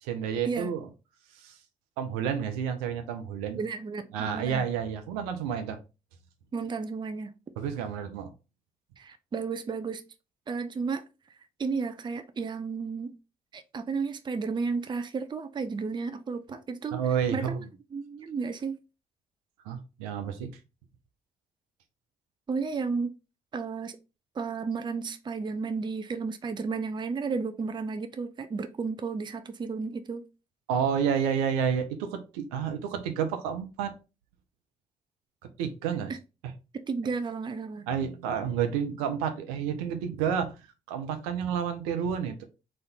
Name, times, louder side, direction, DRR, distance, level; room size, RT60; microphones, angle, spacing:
voice 1, 0.0-0.9 1.3-1.5 2.0-3.6 4.1-5.8 7.6-8.3 16.9-17.7 19.6-20.5 30.7-33.9 35.4-36.1 37.9-40.5 40.9-42.4, right 7 dB, 70° right, 0.6 m, -30 dB
voice 2, 3.6-4.6 6.5-7.3 9.0-10.0 10.5-11.0 11.6-13.2 13.5-17.0 17.3-17.6 17.9-18.8 22.5-23.1 23.5-24.0 24.4-30.3 36.7-37.9, right 4 dB, 25° right, 0.5 m, -33 dB
4.1 x 2.5 x 4.1 m
figure-of-eight pair, 40°, 19 cm